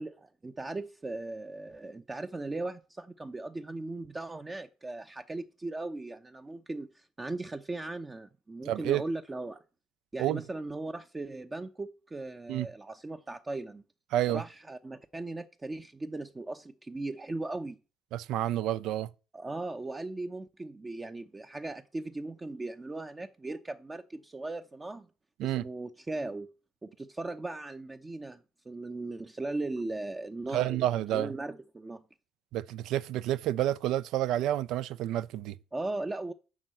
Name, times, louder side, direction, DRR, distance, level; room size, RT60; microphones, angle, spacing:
voice 1, 0.0-9.6 10.1-13.8 14.3-17.8 19.3-25.1 25.4-26.5 26.8-32.0 35.7-36.3, right 2 dB, 20° right, 0.8 m, -38 dB
voice 2, 8.7-9.0 10.2-10.4 12.5-12.7 14.1-14.4 18.1-19.1 25.4-25.6 30.5-31.3 32.5-35.5, right 13 dB, 60° right, 0.5 m, -29 dB
7.3 x 6.2 x 7.8 m
figure-of-eight pair, 50°, 0 cm